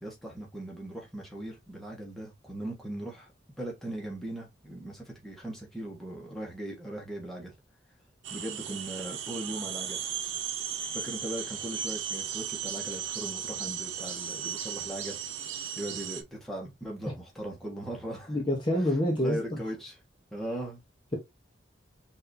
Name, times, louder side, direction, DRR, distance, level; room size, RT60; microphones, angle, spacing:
voice 1, 0.0-3.3 3.6-7.5 8.3-10.0 10.9-15.2 15.8-18.4 19.2-20.0 20.3-20.8, right 1 dB, ahead, 1.3 m, -39 dB
sound 1, 8.2-16.2, right 8 dB, 90° right, 0.8 m, -36 dB
voice 2, 18.3-19.6, left 1 dB, 25° left, 0.9 m, -27 dB
5.8 x 2.8 x 2.7 m
head